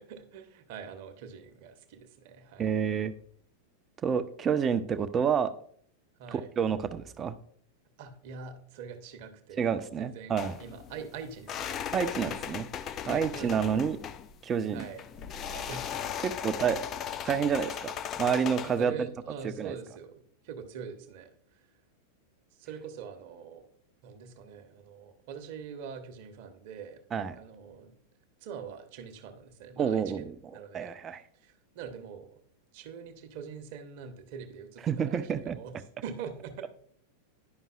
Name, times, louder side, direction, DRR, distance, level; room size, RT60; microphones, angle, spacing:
voice 1, 0.0-2.7 6.2-6.5 8.0-10.3 10.6-12.1 13.0-13.9 14.7-15.1 15.5-16.2 16.4-16.7 18.6-21.6 22.6-23.7 24.0-27.0 27.3-27.9 28.4-30.9 31.3-32.4 32.7-35.8 36.0-36.7, right 6 dB, 50° right, 8 dB, 0.9 m, -44 dB
voice 2, 2.6-3.1 4.0-5.5 6.3-7.3 9.6-10.6 11.9-12.7 13.1-14.0 14.4-14.9 16.2-16.8 17.2-19.1 19.6-19.7 27.1-27.4 29.8-30.3 30.7-31.2 34.8-35.6, right 7 dB, 25° right, 11 dB, 0.5 m, -29 dB
sound 1, 10.4-18.8, left 9 dB, 30° left, 0.4 m, -38 dB
10.5 x 5.4 x 2.4 m, 0.62 s
figure-of-eight pair, 90°, 0 cm